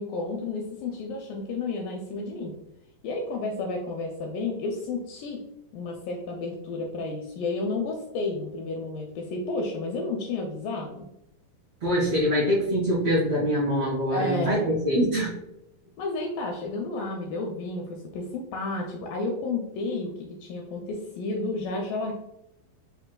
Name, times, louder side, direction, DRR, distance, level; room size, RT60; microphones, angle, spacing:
voice 1, 0.0-2.5 3.0-5.4 5.7-11.1 14.1-14.7 16.0-22.1, left 3 dB, 80° left, 0 dB, 1.9 m, -31 dB
voice 2, 11.8-15.3, equal, 65° right, -8 dB, 1.5 m, -24 dB
5.9 x 2.6 x 2.2 m, 0.85 s
omnidirectional pair, 4.2 m